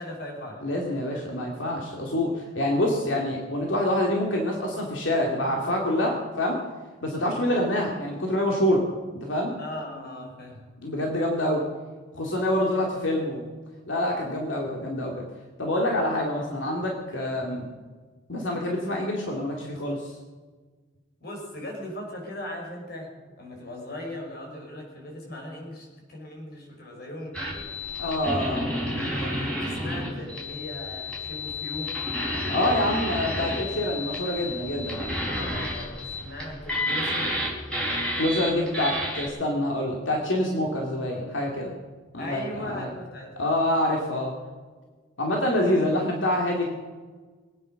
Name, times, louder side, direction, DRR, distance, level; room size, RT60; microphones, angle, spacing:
voice 1, 0.0-0.7 1.1-1.2 9.6-10.7 17.1-17.4 21.2-23.1 23.4-27.7 28.9-31.9 35.3-37.4 42.2-43.5 45.4-45.9, left 1 dB, 55° left, 0 dB, 5.4 m, -39 dB
voice 2, 0.6-6.6 7.0-8.9 9.2-9.5 10.8-11.7 12.1-13.5 13.9-15.2 15.6-17.7 18.3-20.2 28.0-28.7 32.5-35.1 38.2-41.7 42.1-42.9 43.4-44.3 45.2-46.7, left 1 dB, 85° left, -1 dB, 2.5 m, -26 dB
sound 1, 27.3-39.3, left 1 dB, 5° left, 4.2 m, -30 dB
23.5 x 9.5 x 6.5 m, 1.4 s
head